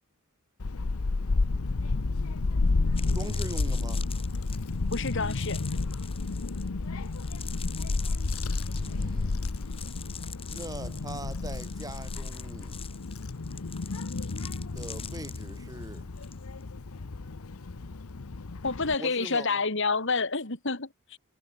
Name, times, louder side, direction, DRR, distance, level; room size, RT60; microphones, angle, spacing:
Child speech kid speaking / Wind, 0.6-19.0, left 3 dB, 85° left, 0.9 m, -31 dB
sound 1, 3.0-16.4 16.6-17.0, left 7 dB, 25° left, 6.1 m, -45 dB
voice 1, 3.1-4.1 8.7-9.4 10.5-12.8 14.7-16.1 19.0-19.6, right 1 dB, 15° right, 4.5 m, -42 dB
voice 2, 4.9-5.6 18.6-21.2, left 4 dB, 60° left, 2.6 m, -29 dB
head